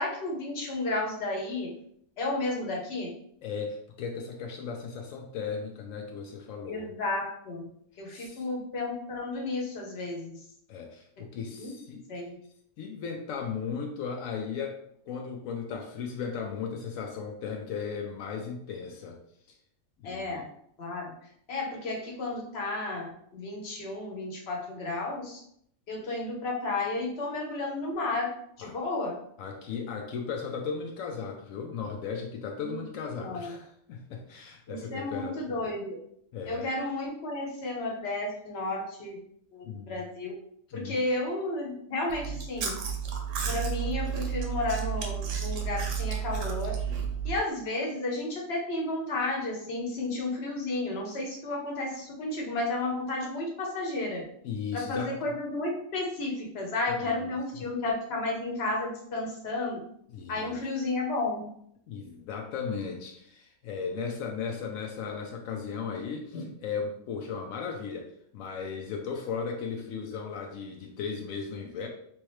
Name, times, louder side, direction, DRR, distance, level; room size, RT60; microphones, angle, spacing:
voice 1, 0.0-1.7 2.2-3.1 6.7-7.7 8.0-10.4 11.6-11.7 12.1-12.4 20.0-20.5 20.8-21.1 21.5-25.4 25.9-28.3 28.6-29.2 32.6-32.8 33.2-33.6 34.7-36.0 36.5-39.2 39.5-40.3 40.7-42.8 43.5-46.8 47.2-54.2 54.7-59.8 60.3-61.4 66.3-66.5, left 2 dB, 55° left, 0 dB, 1.1 m, -32 dB
voice 2, 3.4-6.9 8.1-8.4 10.7-12.1 12.8-14.8 15.1-19.2 20.0-20.4 28.6-28.8 29.4-35.7 36.3-36.7 39.6-40.0 40.7-41.0 54.4-55.3 56.9-57.6 60.1-60.6 61.9-71.9, left 6 dB, 85° left, 2 dB, 1.0 m, -36 dB
Chewing mastication, 42.1-47.4, right 7 dB, 75° right, 1.0 m, -32 dB
3.4 x 3.1 x 3.1 m, 0.67 s
omnidirectional pair, 1.3 m